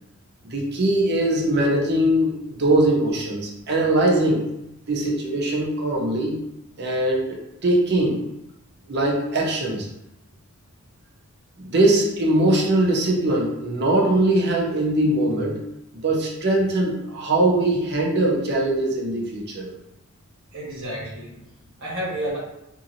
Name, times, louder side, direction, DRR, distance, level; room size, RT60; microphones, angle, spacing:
voice 1, 0.4-4.4 4.9-6.4 6.8-8.2 8.9-9.9 11.6-15.6 16.0-19.7, right 1 dB, 50° right, -2 dB, 0.6 m, -21 dB
voice 2, 20.5-22.4, right 1 dB, 65° right, -6 dB, 1.2 m, -31 dB
2.6 x 2.6 x 2.7 m, 0.86 s
head